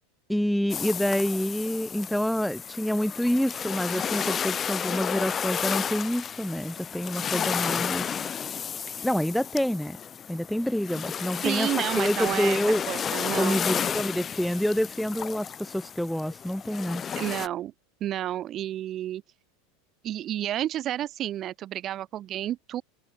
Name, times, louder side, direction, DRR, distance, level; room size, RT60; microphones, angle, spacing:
voice 1, 0.3-8.3 9.0-10.0 10.3-11.7 12.0-12.8 13.3-17.0, equal, ahead, 2.0 m, -27 dB
sound 1, 0.7-17.5, left 7 dB, 30° left, 1.4 m, -32 dB
voice 2, 11.4-12.6 12.9-13.6 17.2-17.7 18.0-19.2 20.0-22.8, right 12 dB, 40° right, 3.6 m, -30 dB
hypercardioid pair, 100°, 0 cm